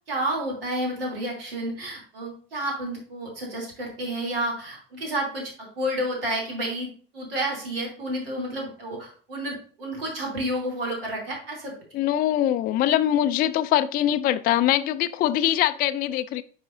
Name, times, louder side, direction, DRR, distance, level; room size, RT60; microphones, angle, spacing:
voice 1, 0.1-11.7, right 1 dB, 75° right, -1 dB, 2.9 m, -30 dB
voice 2, 11.9-16.4, left 12 dB, 30° left, 12 dB, 0.3 m, -23 dB
9.7 x 5.5 x 2.6 m, 0.44 s
figure-of-eight pair, 60°, 29 cm